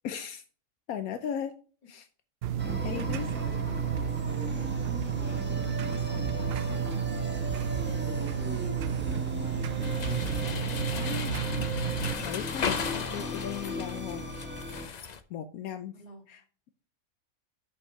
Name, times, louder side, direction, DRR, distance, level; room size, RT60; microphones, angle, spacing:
voice 1, 0.0-0.4 0.9-1.5 1.9-2.1 2.8-3.3 10.9-11.4 11.8-14.3 15.3-15.9 16.3-16.4, left 9 dB, 75° left, 9 dB, 1.1 m, -37 dB
sound 1, 2.4-12.1, right 9 dB, 70° right, 0.6 m, -31 dB
sound 2, 2.6-14.9, left 1 dB, 10° right, 1.0 m, -37 dB
voice 2, 2.7-10.3 16.0-16.2, left 1 dB, 25° left, 1 dB, 2.0 m, -50 dB
sound 3, 9.8-15.2, left 6 dB, 50° left, 0.5 m, -36 dB
6.5 x 5.4 x 5.9 m, 0.40 s
omnidirectional pair, 1.5 m